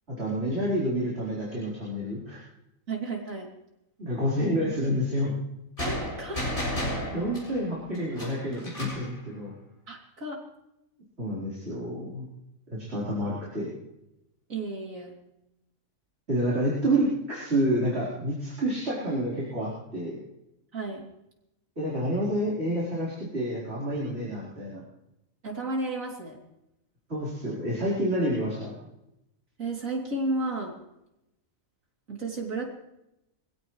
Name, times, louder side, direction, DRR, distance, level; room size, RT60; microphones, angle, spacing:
voice 1, 0.2-2.4 4.0-5.3 6.8-6.9 7.1-9.5 11.2-12.3 12.7-13.7 16.3-20.2 21.8-24.8 27.1-28.9, equal, 50° right, -8 dB, 4.6 m, -29 dB
voice 2, 2.9-3.5 5.8-6.4 9.9-10.4 14.5-15.2 20.7-21.1 25.4-26.4 29.6-30.8 32.1-32.7, right 2 dB, 75° right, -1 dB, 3.5 m, -32 dB
sound 1, 5.8-9.1, equal, 40° left, 7.5 m, -33 dB
23.5 x 16.0 x 3.2 m, 0.87 s
omnidirectional pair, 1.4 m